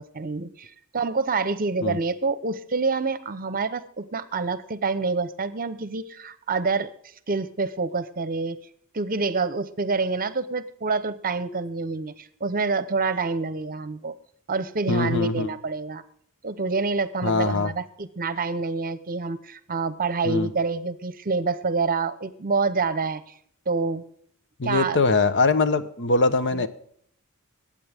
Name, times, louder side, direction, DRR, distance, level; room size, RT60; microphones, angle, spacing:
voice 1, 0.0-6.9 7.3-8.6 8.9-14.1 14.5-16.0 16.4-23.2 23.7-24.0 24.6-25.0 26.5-26.6, right 4 dB, 40° right, 15 dB, 0.8 m, -27 dB
voice 2, 14.9-15.5 17.2-17.7 20.2-20.5 24.6-26.7, left 3 dB, 55° left, 12 dB, 1.0 m, -22 dB
20.5 x 8.8 x 3.5 m, 0.64 s
head